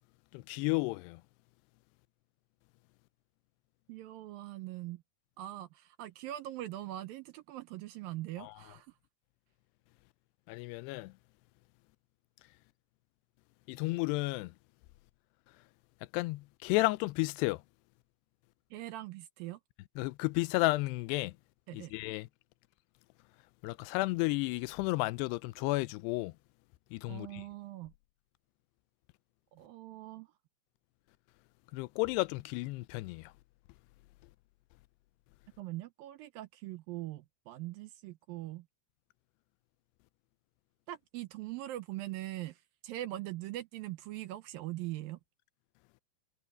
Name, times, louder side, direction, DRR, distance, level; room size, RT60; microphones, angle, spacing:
voice 1, 0.3-1.2 8.4-8.5 10.5-11.1 13.7-14.5 16.1-17.6 20.0-21.3 21.7-22.3 23.6-26.3 26.9-27.4 31.7-33.3, left 22 dB, 90° left, 2.7 m, -32 dB
voice 2, 3.9-5.0 5.4-8.9 18.7-19.6 21.7-21.9 27.1-27.9 29.5-30.3 35.6-38.7 40.9-45.2, right 15 dB, 75° right, 2.2 m, -42 dB
omnidirectional pair, 4.7 m